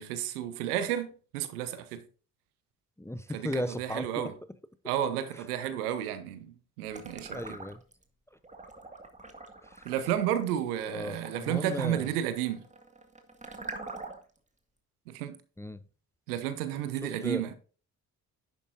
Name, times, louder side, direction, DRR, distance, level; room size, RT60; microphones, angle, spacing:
voice 1, 0.0-2.0 3.3-4.3 4.8-7.4 9.8-12.6 15.1-15.4 16.3-17.5, right 11 dB, 80° right, 1.0 m, -32 dB
voice 2, 3.0-4.1 7.3-7.8 9.7-9.9 10.9-12.1 15.6-15.8 17.0-17.4, left 1 dB, 5° left, 0.7 m, -35 dB
sound 1, 6.9-8.0 8.4-14.4, right 3 dB, 15° right, 2.0 m, -44 dB
11.0 x 8.3 x 2.6 m
figure-of-eight pair, 45°, 45 cm